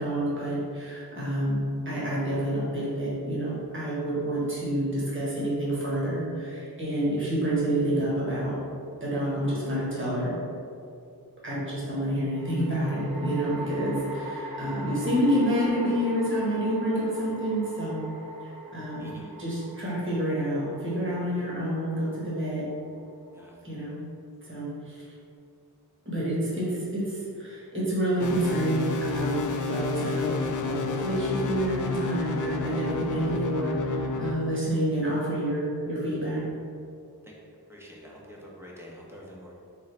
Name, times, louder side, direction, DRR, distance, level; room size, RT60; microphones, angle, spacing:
voice 1, 0.0-8.5 9.0-10.3 11.4-18.0 18.4-19.1 19.4-22.6 23.6-23.9 24.5-25.0 26.0-36.4, right 1 dB, 30° right, -7 dB, 1.4 m, -28 dB
sound 1, 9.2-9.9 12.3-23.6, right 1 dB, 60° right, 0.7 m, -42 dB
voice 2, 19.0-19.3 23.3-23.6 34.7-34.8 37.7-39.5, equal, 5° right, -5 dB, 0.9 m, -46 dB
sound 2, 28.2-34.4, left 3 dB, 55° left, 0.4 m, -30 dB
3.9 x 3.7 x 3.3 m, 2.5 s
wide cardioid pair, 80°, 39 cm